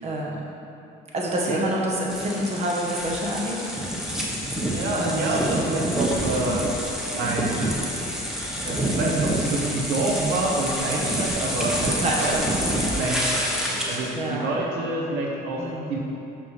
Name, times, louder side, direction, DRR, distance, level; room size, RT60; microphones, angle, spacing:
voice 1, 0.0-0.4 1.1-3.7 5.0-5.4 12.0-12.8 14.1-14.5 15.6-16.0, right 1 dB, 40° right, -3 dB, 1.6 m, -27 dB
sound 1, 2.1-14.1, equal, 5° right, 1.3 m, -27 dB
voice 2, 4.4-6.6 7.1-7.7 8.6-12.4 12.9-15.6 15.9-16.0, right 2 dB, 85° right, -2 dB, 1.1 m, -27 dB
6.1 x 6.0 x 6.2 m, 2.8 s
cardioid pair, 110°, 17 cm